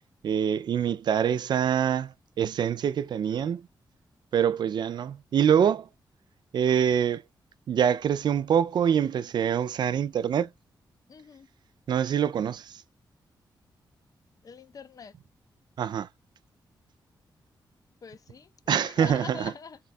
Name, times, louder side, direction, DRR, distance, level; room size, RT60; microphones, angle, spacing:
voice 1, 0.2-3.6 4.3-5.9 6.5-7.2 7.7-10.5 11.9-12.8 15.8-16.1 18.7-19.5, right 8 dB, 65° right, 0.3 m, -25 dB
voice 2, 11.1-11.5 14.4-15.1 18.0-19.8, left 6 dB, 50° left, 0.5 m, -43 dB
3.6 x 2.3 x 4.1 m
wide cardioid pair, 105°, 8 cm